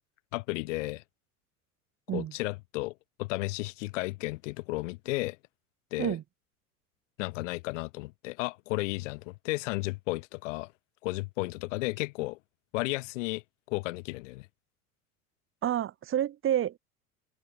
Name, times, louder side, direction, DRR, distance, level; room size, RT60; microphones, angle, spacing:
voice 1, 0.3-1.0 2.1-2.9 3.2-5.4 5.9-6.2 7.2-10.7 11.0-12.4 12.7-13.4 13.7-14.5, left 22 dB, 55° left, 0.9 m, -33 dB
voice 2, 15.6-16.8, right 11 dB, 25° right, 1.2 m, -29 dB
figure-of-eight pair, 75°, 46 cm